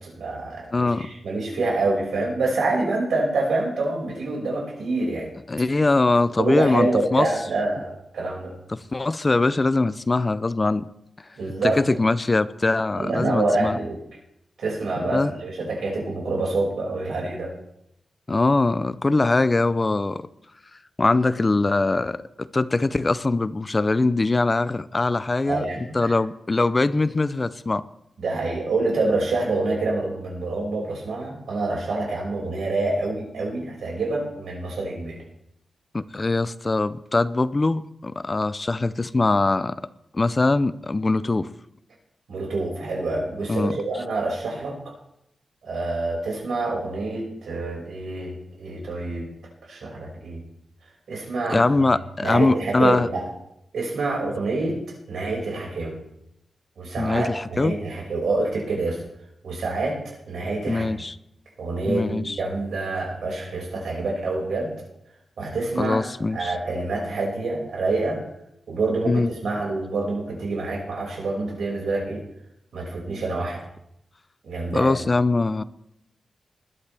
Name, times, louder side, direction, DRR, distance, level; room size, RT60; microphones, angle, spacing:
voice 1, 0.0-5.3 6.4-8.5 11.4-11.8 13.0-14.0 14.6-17.5 25.5-26.1 28.2-35.2 42.3-44.9 45.6-49.3 49.6-50.4 51.1-51.9 52.2-53.3 53.7-54.8 55.1-56.0 56.8-59.0 59.4-60.9 61.6-64.7 65.4-66.0 66.3-68.2 68.7-72.2 72.7-73.6 74.4-75.0, right 2 dB, 85° right, -2 dB, 5.8 m, -27 dB
voice 2, 0.7-1.1 5.5-7.3 8.7-10.9 11.6-13.8 15.1-15.3 18.3-20.3 21.0-25.6 25.9-27.8 35.9-39.9 40.1-41.5 43.5-43.7 51.5-53.1 57.0-57.8 60.6-61.1 61.9-62.4 65.8-66.6 69.1-69.3 74.7-75.6, left 3 dB, 25° left, 15 dB, 0.5 m, -22 dB
20.5 x 11.5 x 3.4 m, 0.79 s
wide cardioid pair, 140°, 0 cm